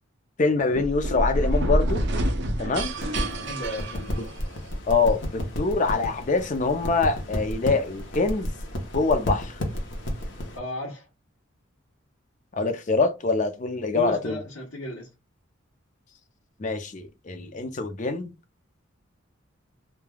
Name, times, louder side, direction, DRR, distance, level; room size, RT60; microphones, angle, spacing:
voice 1, 0.4-2.1 2.6-2.9 4.2-4.3 4.9-8.5 8.9-9.6 12.5-14.4 16.6-18.3, left 3 dB, 35° left, 0.5 m, -25 dB
sound 1, 0.7-4.7, right 1 dB, 55° right, 0.5 m, -27 dB
voice 2, 2.6-2.9 3.3-4.2 10.5-11.1 13.9-15.1, left 1 dB, 85° left, 1.1 m, -35 dB
sound 2, 2.9-10.6, equal, 60° left, 0.8 m, -32 dB
3.2 x 2.2 x 2.2 m
head